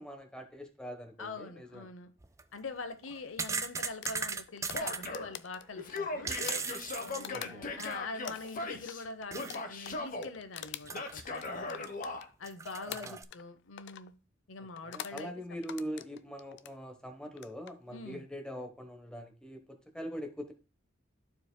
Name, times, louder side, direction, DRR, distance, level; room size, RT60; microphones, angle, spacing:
voice 1, 0.0-1.8 7.3-7.8 12.9-13.2 14.8-20.5, equal, 5° left, 1.0 m, -43 dB
voice 2, 1.2-2.1 2.5-6.3 7.0-11.9 12.4-14.1 14.5-15.3 15.9-16.0 17.9-18.2, left 4 dB, 80° left, 0.8 m, -44 dB
sound 1, 2.2-2.4 3.0-5.1 6.0-8.1 8.4-8.5 9.3-9.6 9.8-9.9 10.8-11.5 11.9-12.0 12.4-13.2, right 5 dB, 15° right, 0.3 m, -38 dB
sound 2, 4.0-7.9 8.2-12.5 12.9-13.5 13.8-14.1 14.8-15.3 15.6-16.8 17.3-17.7, left 10 dB, 60° left, 0.4 m, -45 dB
Male speech man speaking / Yell, 4.7-5.3 5.8-9.0 9.3-10.3 10.9-12.2, left 3 dB, 45° left, 0.9 m, -38 dB
13.5 x 4.7 x 2.2 m
head